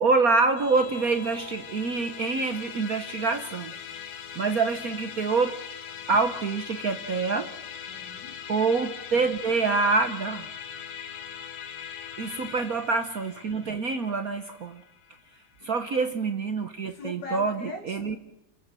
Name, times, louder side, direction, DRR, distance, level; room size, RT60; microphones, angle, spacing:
voice 1, 0.0-3.7 4.4-5.5 6.1-7.5 8.5-10.5 12.2-14.8 15.6-18.2, right 4 dB, 50° right, 8 dB, 1.3 m, -26 dB
Musical instrument, 0.6-16.1, left 8 dB, 80° left, 2.2 m, -41 dB
voice 2, 7.9-8.4 12.4-12.5 15.6-15.7 16.9-18.2, left 3 dB, 55° left, 3 dB, 3.9 m, -40 dB
29.5 x 13.0 x 7.6 m, 0.88 s
omnidirectional pair, 2.3 m